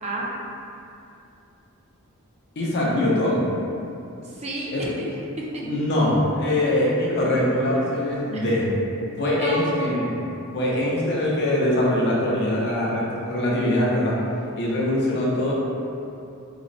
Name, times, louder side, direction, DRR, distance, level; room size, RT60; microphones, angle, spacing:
voice 1, 2.6-3.5 4.7-4.8 5.6-8.7 9.2-10.1 10.5-14.2 14.6-15.5, left 1 dB, 50° left, -5 dB, 0.6 m, -22 dB
voice 2, 4.2-5.7 8.3-8.6 9.3-10.2, right 1 dB, 30° right, -4 dB, 0.4 m, -31 dB
3.0 x 2.0 x 3.8 m, 2.7 s
head